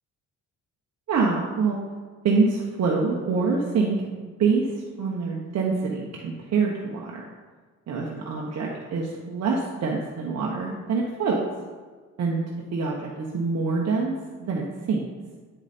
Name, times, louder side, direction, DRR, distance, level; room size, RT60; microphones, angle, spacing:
voice 1, 1.1-1.8 2.2-4.0 4.4-7.2 7.9-11.4 12.2-12.4 12.7-15.0, right 4 dB, 60° right, -2 dB, 1.1 m, -25 dB
8.9 x 4.8 x 4.3 m, 1.5 s
cardioid pair, 90°, 30 cm